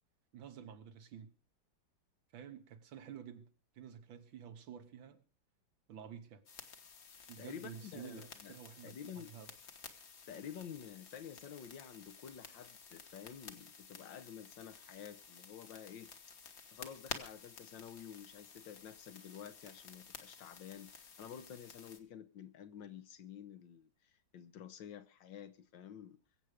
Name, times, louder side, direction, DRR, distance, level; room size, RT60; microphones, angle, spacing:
voice 1, 0.3-1.3 2.3-3.5 3.8-5.2 5.9-6.4 7.3-9.5, right 8 dB, 80° right, 1.9 m, -50 dB
sound 1, 6.5-22.0, left 5 dB, 50° left, 1.7 m, -53 dB
voice 2, 7.4-8.6 8.8-9.3 10.3-16.1 16.5-26.2, left 8 dB, 70° left, 1.6 m, -50 dB
22.5 x 7.9 x 4.9 m
omnidirectional pair, 2.1 m